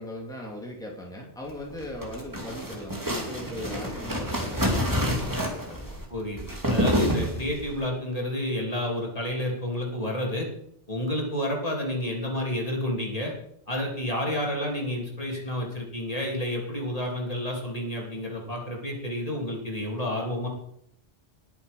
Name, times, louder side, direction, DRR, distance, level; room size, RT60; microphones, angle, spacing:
voice 1, 0.0-5.8, left 1 dB, 5° left, -1 dB, 2.6 m, -39 dB
sound 1, 1.7-7.7, equal, 15° right, 2.6 m, -28 dB
voice 2, 6.1-10.5 10.9-13.3 13.7-20.5, left 1 dB, 35° left, -2 dB, 3.3 m, -30 dB
20.5 x 7.1 x 5.5 m, 0.72 s
omnidirectional pair, 1.1 m